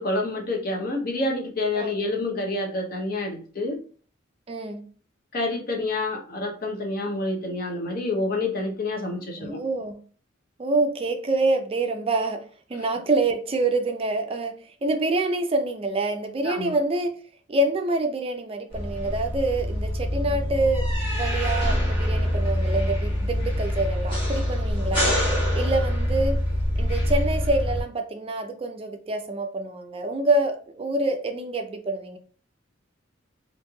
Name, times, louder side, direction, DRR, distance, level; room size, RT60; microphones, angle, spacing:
voice 1, 0.0-3.8 5.3-9.6 16.4-16.7, left 2 dB, 50° left, 0.7 m, -28 dB
voice 2, 4.5-4.8 9.4-10.0 10.6-12.4 12.7-14.5 14.8-17.2 17.5-20.8 21.1-25.2 25.5-26.4 26.8-32.2, right 2 dB, 30° right, 0.4 m, -26 dB
sound 1, 18.7-27.8, equal, 30° left, 1.3 m, -25 dB
3.1 x 2.5 x 2.2 m
head